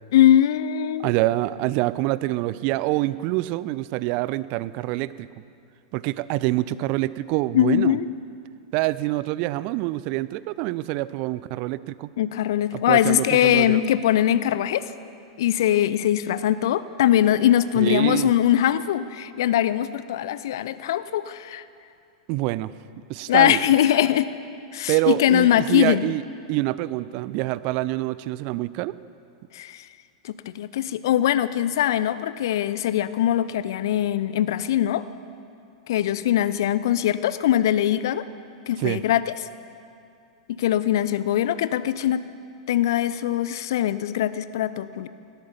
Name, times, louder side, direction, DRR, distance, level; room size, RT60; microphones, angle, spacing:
voice 1, 0.1-1.1 7.5-8.1 12.2-14.8 15.4-21.6 23.3-24.3 24.7-26.0 29.5-29.8 30.2-35.0 35.9-38.2 38.7-39.3 40.5-42.2 42.7-45.1, left 11 dB, 55° left, 15 dB, 0.6 m, -21 dB
voice 2, 1.0-5.3 5.9-8.0 8.7-12.1 12.7-13.8 17.7-18.3 22.3-22.7 23.1-23.6 24.9-26.2 26.5-28.9 38.8-39.0, right 18 dB, 40° right, 18 dB, 0.4 m, -26 dB
18.0 x 13.0 x 5.7 m, 2.4 s
figure-of-eight pair, 90°, 2 cm